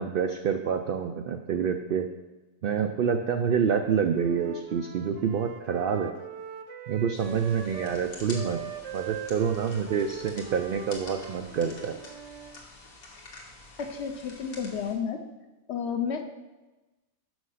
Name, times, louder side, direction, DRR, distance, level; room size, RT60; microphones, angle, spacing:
voice 1, 0.0-2.1 2.6-6.1 6.9-8.6 8.9-12.0, right 7 dB, 90° right, 6 dB, 0.4 m, -27 dB
Wind instrument woodwind instrument, 4.1-8.0 8.3-12.6, right 7 dB, 65° right, 0.9 m, -42 dB
sound 1, 7.1-14.9, left 2 dB, 90° left, 1.9 m, -47 dB
voice 2, 13.8-15.3 15.7-16.2, left 6 dB, 60° left, 7 dB, 0.8 m, -31 dB
6.3 x 6.0 x 5.6 m, 1.1 s
omnidirectional pair, 1.5 m